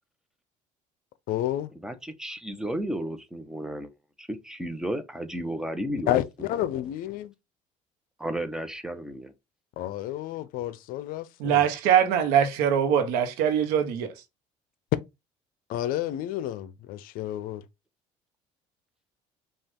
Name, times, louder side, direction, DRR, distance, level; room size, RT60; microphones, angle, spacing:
voice 1, 1.3-1.7 6.1-7.3 9.8-11.7 15.7-17.6, left 13 dB, 70° left, 0.5 m, -30 dB
voice 2, 1.8-3.9 4.2-6.2 8.2-9.3, right 1 dB, 5° right, 0.9 m, -33 dB
voice 3, 11.4-14.1, right 9 dB, 85° right, 1.0 m, -22 dB
5.2 x 2.4 x 3.6 m
supercardioid pair, 95°, 15 cm